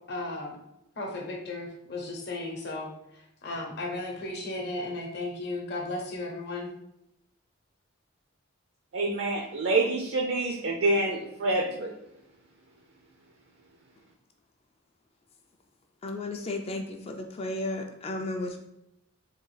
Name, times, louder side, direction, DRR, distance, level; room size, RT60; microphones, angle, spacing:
voice 1, 0.1-0.6 1.0-6.7, left 2 dB, 50° left, 0 dB, 0.8 m, -35 dB
voice 2, 8.9-11.9, right 2 dB, 55° right, 0 dB, 0.4 m, -27 dB
voice 3, 16.0-18.6, left 2 dB, 30° left, 4 dB, 0.3 m, -34 dB
3.6 x 2.4 x 3.1 m, 0.83 s
head